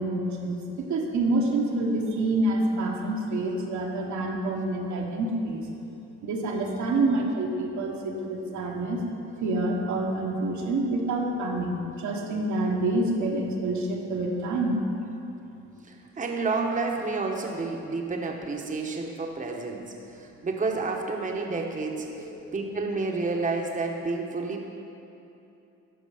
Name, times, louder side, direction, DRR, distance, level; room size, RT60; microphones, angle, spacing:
voice 1, 0.0-5.7 6.2-9.0 9.4-14.8 22.4-22.5, right 2 dB, 70° right, 0 dB, 1.3 m, -27 dB
voice 2, 15.8-24.7, right 3 dB, 25° right, 1 dB, 1.0 m, -30 dB
13.0 x 5.0 x 5.0 m, 2.8 s
cardioid pair, 90°, 30 cm